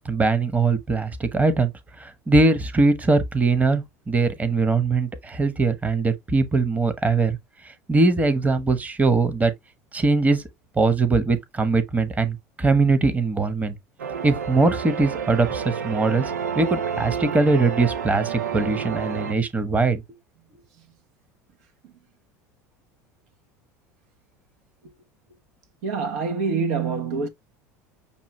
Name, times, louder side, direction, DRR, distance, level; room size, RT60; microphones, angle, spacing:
voice 1, 0.0-1.7 2.0-7.4 7.9-9.5 9.9-10.4 10.8-13.7 14.2-20.0, right 3 dB, 20° right, 1.1 m, -21 dB
sound 1, 14.0-19.3, right 7 dB, 90° right, 0.5 m, -29 dB
voice 2, 25.8-27.3, right 5 dB, 70° right, 1.0 m, -26 dB
7.0 x 2.4 x 3.1 m
hypercardioid pair, 80°, 9 cm